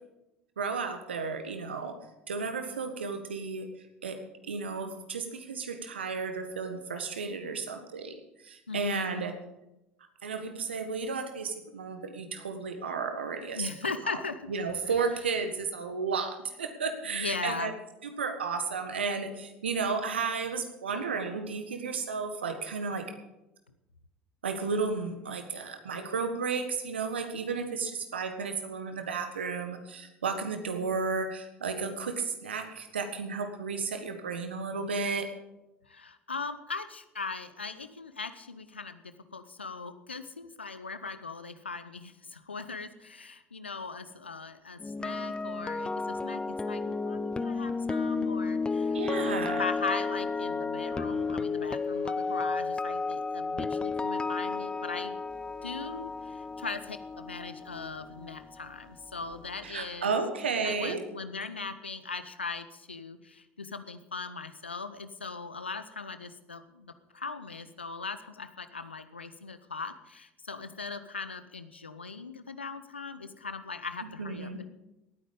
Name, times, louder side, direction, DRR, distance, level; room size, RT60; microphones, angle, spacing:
voice 1, 0.6-2.0 2.3-3.7 4.0-4.2 4.4-8.2 8.4-9.3 10.2-13.7 14.5-17.7 18.2-23.0 24.4-35.3 48.9-49.6 59.6-61.0 74.0-74.6, right 5 dB, 80° right, 7 dB, 1.5 m, -33 dB
voice 2, 8.7-9.3 13.5-14.5 14.8-15.2 17.0-17.7 35.8-55.1 55.6-60.1 60.6-74.7, left 4 dB, 90° left, 12 dB, 0.8 m, -39 dB
sound 1, 44.8-58.9 59.1-59.4, left 4 dB, 15° left, 0.5 m, -32 dB
18.0 x 9.3 x 5.3 m, 0.95 s
figure-of-eight pair, 65°, 6 cm